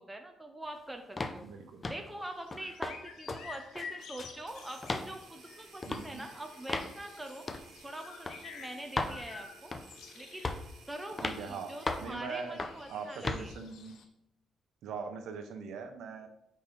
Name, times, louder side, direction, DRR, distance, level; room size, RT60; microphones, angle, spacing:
voice 1, 0.0-1.5 1.9-7.4 7.8-9.7 10.2-10.6 10.9-13.6, right 1 dB, 10° right, 5 dB, 0.7 m, -44 dB
sound 1, 1.2-1.4 1.8-2.1 2.5-3.0 3.3-3.4 3.8-4.4 4.8-5.1 5.8-6.0 6.7-6.9 7.5-7.7 8.3-8.4 9.0-9.2 9.7-10.0 10.4-10.7 11.2-11.4 11.9-12.1 12.6-12.8 13.2-13.5, left 2 dB, 25° left, 0.6 m, -35 dB
voice 2, 1.4-1.9 5.8-6.2 11.2-11.7 12.0-12.6 12.9-14.0 14.8-16.3, right 5 dB, 80° right, 6 dB, 0.9 m, -41 dB
sound 2, 2.2-14.1, left 6 dB, 85° left, 0.9 m, -51 dB
sound 3, 4.5-12.2, right 4 dB, 60° right, 1.2 m, -56 dB
5.4 x 4.3 x 5.3 m, 0.78 s
cardioid pair, 90°, 0 cm